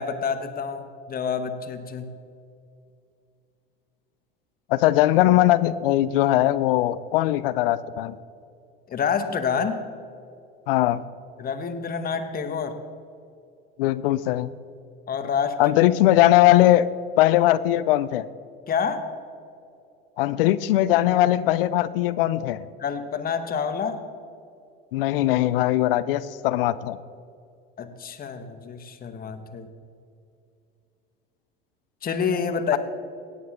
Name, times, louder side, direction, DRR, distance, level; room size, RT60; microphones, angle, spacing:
voice 1, 0.0-2.2 8.9-9.8 11.4-12.8 15.1-15.8 18.7-19.1 22.8-24.0 27.8-29.7 32.0-32.8, left 6 dB, 30° left, 8 dB, 1.2 m, -28 dB
voice 2, 4.7-8.2 10.7-11.0 13.8-14.5 15.6-16.9 17.2-18.3 20.2-22.7 24.9-27.0 32.7-32.8, left 14 dB, 75° left, 17 dB, 0.5 m, -20 dB
17.5 x 8.3 x 3.7 m, 2.5 s
hypercardioid pair, 80°, 29 cm